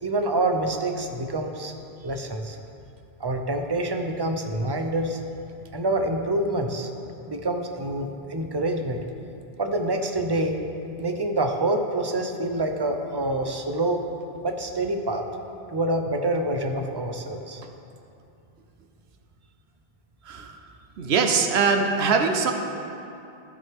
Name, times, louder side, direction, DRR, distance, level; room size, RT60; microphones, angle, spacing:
voice 1, 0.0-1.7 2.0-2.6 3.2-5.2 5.7-6.9 7.3-9.0 9.6-10.6 11.0-14.0 14.4-15.2 15.7-17.6, right 2 dB, 30° right, 4 dB, 0.5 m, -26 dB
voice 2, 20.3-20.6 21.0-22.5, right 5 dB, 90° right, 5 dB, 1.0 m, -22 dB
14.0 x 6.2 x 3.5 m, 2.7 s
omnidirectional pair, 1.0 m